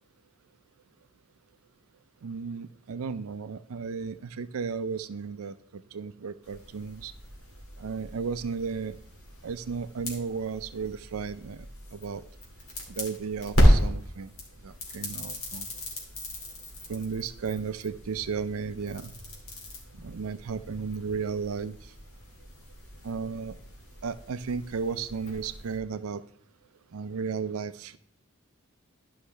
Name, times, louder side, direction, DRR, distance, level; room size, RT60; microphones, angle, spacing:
voice 1, 2.2-5.5 5.9-7.1 7.8-9.0 9.4-11.7 11.9-12.2 12.9-14.3 14.6-15.7 16.9-19.1 20.0-21.8 23.0-23.6 24.0-26.2 26.9-28.0, right 5 dB, 80° right, 13 dB, 0.4 m, -34 dB
sound 1, 6.4-25.8, equal, 80° left, 2.4 m, -32 dB
11.5 x 5.5 x 3.3 m, 0.63 s
head